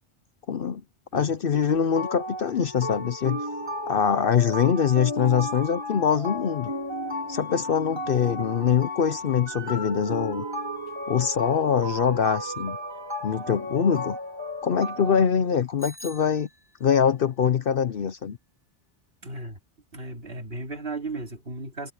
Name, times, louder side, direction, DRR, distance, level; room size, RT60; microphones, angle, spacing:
voice 1, 0.5-0.8 1.1-3.4 3.9-6.7 7.3-10.4 11.1-12.8 13.2-14.2 14.6-16.5 16.8-18.4, left 7 dB, 55° left, 0.8 m, -23 dB
sound 1, 1.5-15.2, left 1 dB, 20° right, 2.1 m, -34 dB
Bicycle bell, 15.8-17.0, left 1 dB, 30° left, 2.3 m, -45 dB
voice 2, 19.2-19.6 19.9-21.9, right 2 dB, 55° right, 2.9 m, -35 dB
omnidirectional pair, 1.2 m